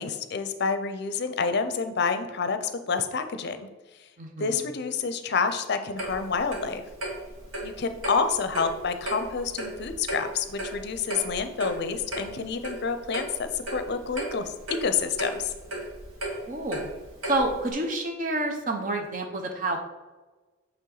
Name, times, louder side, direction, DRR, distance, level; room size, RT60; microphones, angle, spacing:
voice 1, 0.0-3.7 4.4-6.8 7.6-14.5 14.8-15.5, left 5 dB, 55° left, 9 dB, 0.5 m, -28 dB
voice 2, 4.2-4.7 16.5-17.0 17.3-19.8, right 2 dB, 40° right, 4 dB, 0.7 m, -29 dB
Clock, 6.0-17.7, right 1 dB, 90° right, 1.8 m, -36 dB
8.3 x 3.4 x 3.9 m, 1.2 s
head